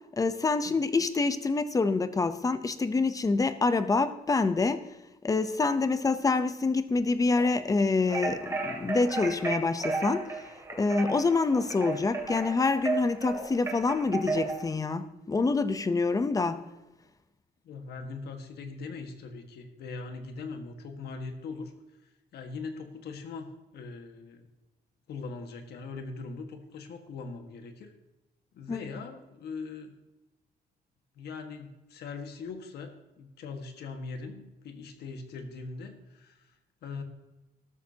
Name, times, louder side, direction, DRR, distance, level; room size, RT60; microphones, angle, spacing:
voice 1, 0.1-4.8 5.2-10.2 10.8-16.6 28.7-28.8, left 3 dB, 20° left, 12 dB, 0.7 m, -26 dB
sound 1, 7.4-7.5 8.1-8.2 9.0-9.1 9.8-9.9 10.7-10.8 11.5-11.6 12.4-12.5 13.3-13.5 14.3-14.4, left 3 dB, 60° left, 4.7 m, -43 dB
sound 2, 8.1-14.7, right 3 dB, 15° right, 2.4 m, -33 dB
voice 2, 17.6-21.7 22.3-24.5 25.1-27.9 28.5-29.9 31.2-36.5 36.8-37.0, left 4 dB, 90° left, 6 dB, 1.6 m, -41 dB
13.0 x 13.0 x 2.8 m, 1.0 s
cardioid pair, 140°, 16 cm